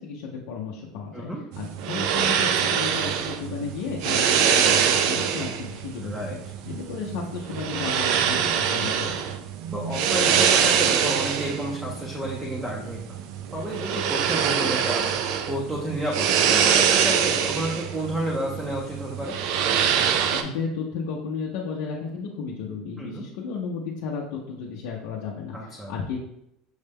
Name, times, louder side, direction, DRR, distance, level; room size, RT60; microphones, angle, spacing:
voice 1, 0.0-1.3 1.6-6.4 6.7-9.2 20.3-26.2, left 5 dB, 70° left, -3 dB, 0.6 m, -33 dB
sound 1, 1.5-20.4, right 8 dB, 55° right, 0.4 m, -24 dB
voice 2, 6.0-6.4 8.0-8.2 9.7-13.2 13.5-15.0 15.5-19.4 23.0-23.3 25.5-25.9, equal, 5° right, -3 dB, 0.5 m, -31 dB
6.3 x 2.2 x 3.4 m, 0.81 s
cardioid pair, 165°, 0 cm